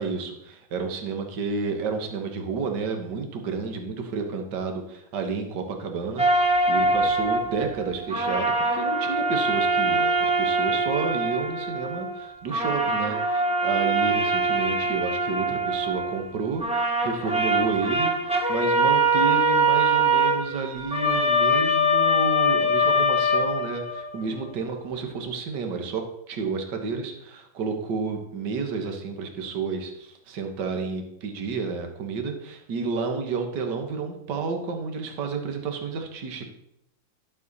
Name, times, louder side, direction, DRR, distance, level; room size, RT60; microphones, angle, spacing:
voice 1, 0.0-36.5, right 4 dB, 60° right, 5 dB, 1.9 m, -31 dB
sound 1, 6.2-12.2 12.5-16.3 16.6-24.1, right 1 dB, 5° right, 0.5 m, -23 dB
12.5 x 7.7 x 4.1 m, 0.79 s
omnidirectional pair, 2.2 m